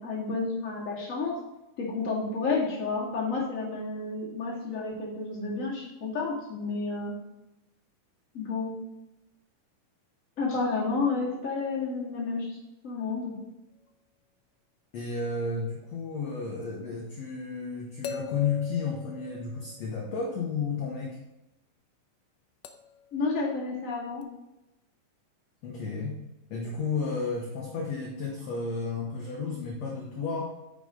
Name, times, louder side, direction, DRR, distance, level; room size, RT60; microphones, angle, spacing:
voice 1, 0.0-1.3 1.8-7.1 8.3-8.7 10.4-12.6 12.8-13.4 23.1-24.2, left 4 dB, 25° left, -6 dB, 2.2 m, -30 dB
voice 2, 14.9-21.2 25.6-26.2 26.5-30.5, left 4 dB, 60° left, -2 dB, 1.9 m, -32 dB
sound 1, 16.6-16.7 18.0-20.1 22.6-23.1 24.2-24.3, left 6 dB, 80° left, 2.2 m, -40 dB
9.0 x 6.5 x 3.8 m, 0.95 s
omnidirectional pair, 3.9 m